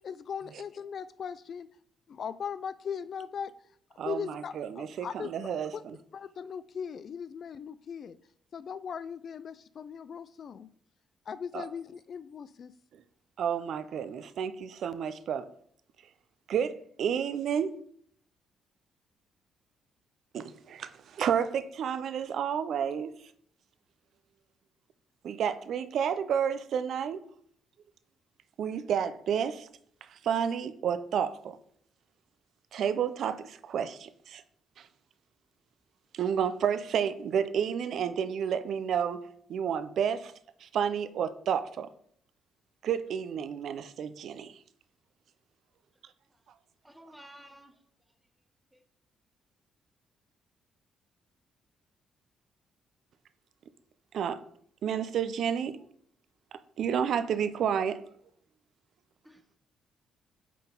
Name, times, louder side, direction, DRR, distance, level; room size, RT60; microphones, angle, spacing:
voice 1, 0.0-1.7 2.1-3.5 4.0-5.3 5.7-5.8 6.1-8.2 8.5-10.7 11.3-12.7, left 7 dB, 55° left, 0.3 m, -39 dB
voice 2, 4.0-6.0 11.5-11.7 12.9-13.0 13.4-15.5 16.5-17.8 20.3-23.1 25.2-27.2 28.6-29.7 30.0-31.6 32.7-34.4 34.8-34.9 36.1-39.2 39.5-40.3 40.6-41.9 42.8-44.6 54.1-54.4 54.8-55.8 56.5-58.0, right 8 dB, 65° right, 0.5 m, -31 dB
voice 3, 46.8-47.8 48.7-48.8 59.2-59.6, right 1 dB, 5° right, 0.8 m, -53 dB
8.3 x 3.9 x 3.8 m
cardioid pair, 90°, 0 cm